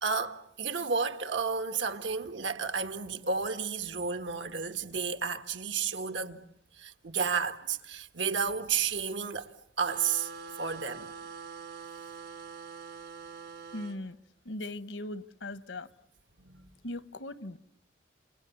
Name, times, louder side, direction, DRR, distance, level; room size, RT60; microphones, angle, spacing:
voice 1, 0.0-6.4 6.8-9.5 9.8-10.3 10.6-11.2 16.5-16.6, right 5 dB, 75° right, 1.8 m, -32 dB
sound 1, 9.8-14.0, right 5 dB, 60° right, 2.4 m, -44 dB
voice 2, 13.7-14.2 14.4-15.9 16.8-17.6, left 1 dB, 75° left, 1.1 m, -39 dB
29.0 x 29.0 x 7.2 m
head